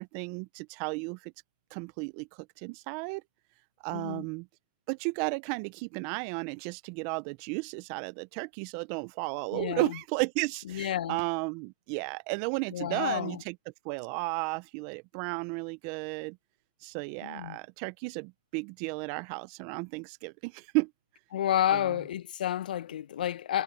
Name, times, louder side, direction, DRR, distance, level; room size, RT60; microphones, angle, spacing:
voice 1, 0.0-1.3 1.7-2.3 2.6-3.2 3.8-4.5 4.9-13.5 13.8-16.4 16.8-20.9, right 29 dB, 20° right, 1.0 m, -34 dB
voice 2, 3.9-4.2 9.5-10.0 10.6-11.2 12.7-13.4 17.2-17.6 21.3-23.6, left 11 dB, 40° left, 1.6 m, -30 dB
hypercardioid pair, 150°, 7 cm